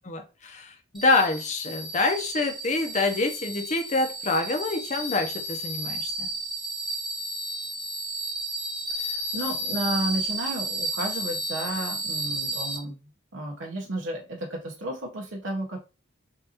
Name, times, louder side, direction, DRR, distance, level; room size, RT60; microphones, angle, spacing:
voice 1, 0.0-6.3, left 3 dB, 40° left, 4 dB, 0.7 m, -26 dB
sound 1, 0.9-12.8, right 1 dB, ahead, 0.7 m, -32 dB
voice 2, 8.9-13.0 13.3-15.8, right 1 dB, 80° right, -1 dB, 0.9 m, -32 dB
5.5 x 2.6 x 2.8 m, 0.30 s
head